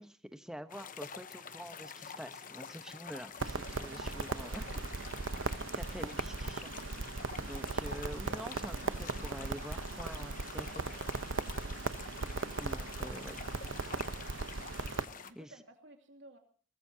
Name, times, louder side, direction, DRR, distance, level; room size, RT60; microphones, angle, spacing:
voice 1, 0.0-4.9 5.7-6.7 7.1-10.8 12.6-13.4 15.3-15.5, equal, 5° right, 8 dB, 1.0 m, -46 dB
sound 1, 0.7-15.3, left 6 dB, 40° left, 0.9 m, -48 dB
sound 2, 3.0-9.2, left 1 dB, 25° left, 3.6 m, -64 dB
Crackle, 3.4-15.1, right 3 dB, 85° right, 0.9 m, -38 dB
voice 2, 4.6-5.6 7.9-8.2 15.1-16.4, right 2 dB, 65° right, 3 dB, 2.8 m, -57 dB
23.0 x 19.5 x 2.8 m, 0.43 s
head